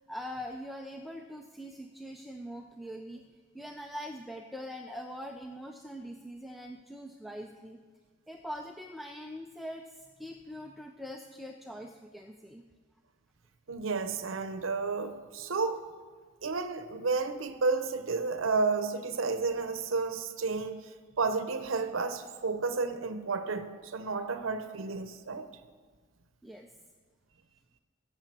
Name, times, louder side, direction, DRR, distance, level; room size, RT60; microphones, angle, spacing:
voice 1, 0.0-3.2 3.5-7.8 8.3-12.6 26.4-26.7, equal, ahead, 2 dB, 0.4 m, -43 dB
voice 2, 13.7-15.9 16.4-20.9 21.2-25.5, right 4 dB, 75° right, 10 dB, 0.7 m, -31 dB
15.0 x 6.7 x 7.5 m, 1.5 s
head